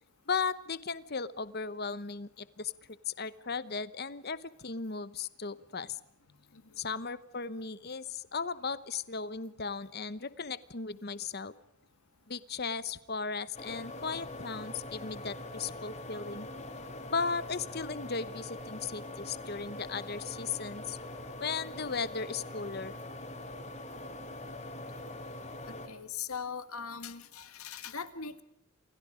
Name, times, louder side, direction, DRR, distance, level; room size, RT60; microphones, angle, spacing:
voice 1, 0.3-2.7 3.1-6.0 6.8-11.5 12.3-16.5 17.1-21.0 21.4-22.9, left 5 dB, 45° left, 16 dB, 1.0 m, -36 dB
voice 2, 6.5-6.8 25.7-28.4, left 6 dB, 80° left, 11 dB, 1.8 m, -41 dB
sound 1, 13.5-25.9, left 2 dB, 30° left, 2.7 m, -43 dB
29.0 x 27.0 x 5.1 m, 0.75 s
head